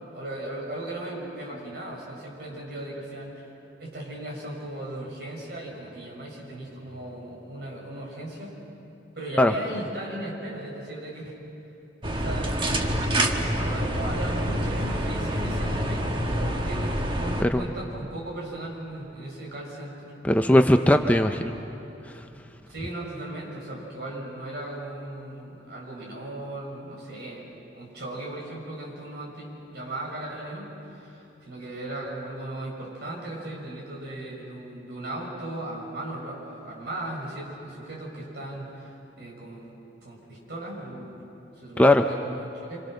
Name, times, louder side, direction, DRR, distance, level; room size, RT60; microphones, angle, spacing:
voice 1, 0.1-3.5 3.8-8.6 9.1-11.4 12.1-12.6 13.6-20.1 22.7-39.7 40.0-42.8, right 1 dB, 60° right, -2 dB, 6.4 m, -37 dB
sound 1, 12.0-17.4, right 1 dB, 25° right, 1.4 m, -27 dB
voice 2, 20.2-21.5 22.1-22.2 41.8-42.0, left 1 dB, 10° left, 6 dB, 0.6 m, -19 dB
27.0 x 26.5 x 6.5 m, 2.9 s
head